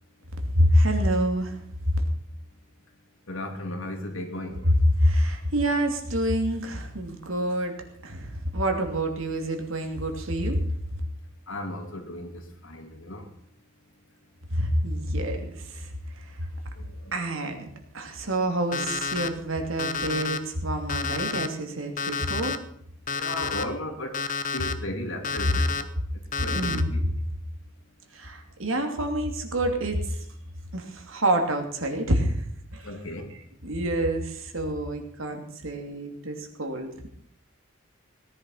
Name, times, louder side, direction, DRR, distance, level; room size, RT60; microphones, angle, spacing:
voice 1, 0.5-1.6 4.6-4.7 5.0-7.7 8.0-10.6 14.5-15.9 17.1-17.7 17.9-22.6 23.6-23.7 26.5-26.9 28.1-30.2 30.7-32.9 33.6-37.1, right 1 dB, 75° right, 4 dB, 2.8 m, -27 dB
voice 2, 3.3-4.7 11.5-13.3 16.8-17.1 23.1-24.2 24.5-25.9 26.4-27.1 32.8-33.3, left 1 dB, 75° left, 4 dB, 2.8 m, -35 dB
Alarm, 18.7-19.3 19.8-20.4 20.9-21.5 22.0-22.6 23.1-23.6 24.1-24.7 25.2-25.8 26.3-26.8, left 5 dB, 40° left, 0.8 m, -30 dB
18.0 x 10.5 x 5.8 m, 0.67 s
head